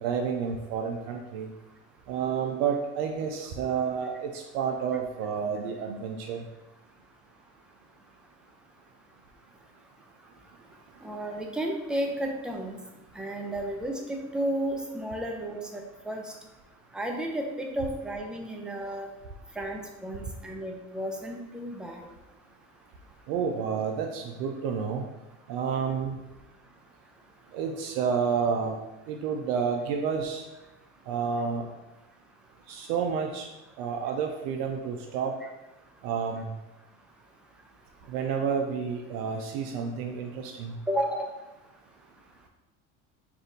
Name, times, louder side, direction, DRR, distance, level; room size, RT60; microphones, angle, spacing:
voice 1, 0.0-1.5 2.1-6.4 23.3-25.0 25.5-26.1 27.5-28.8 29.1-30.4 31.1-31.7 32.7-33.5 33.8-35.3 36.0-36.5 38.1-40.8, right 6 dB, 70° right, 2 dB, 0.5 m, -30 dB
voice 2, 11.0-12.8 13.1-16.3 16.9-19.1 19.6-22.1 40.9-41.3, right 1 dB, ahead, 1 dB, 0.6 m, -32 dB
3.5 x 2.5 x 4.1 m, 0.99 s
supercardioid pair, 85°, 35 cm